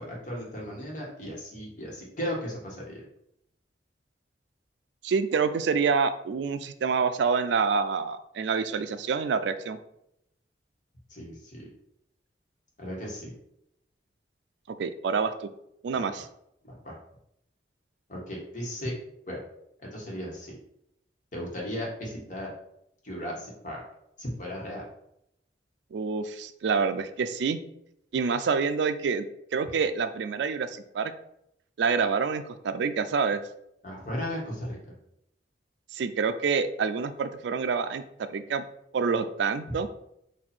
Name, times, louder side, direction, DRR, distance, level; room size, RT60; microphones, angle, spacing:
voice 1, 0.0-3.0 11.1-11.7 12.8-13.3 15.9-16.1 16.6-17.0 18.1-18.9 19.3-19.4 19.8-20.5 21.3-22.5 23.0-23.8 24.2-24.8 33.8-34.8, equal, 45° left, -2 dB, 1.4 m, -36 dB
voice 2, 5.0-9.8 14.7-15.5 15.8-16.2 25.9-27.6 28.1-29.3 29.5-31.1 31.8-33.4 35.9-38.0 38.3-38.6 38.9-39.9, right 5 dB, 75° right, 11 dB, 0.3 m, -27 dB
4.2 x 2.6 x 4.3 m, 0.78 s
head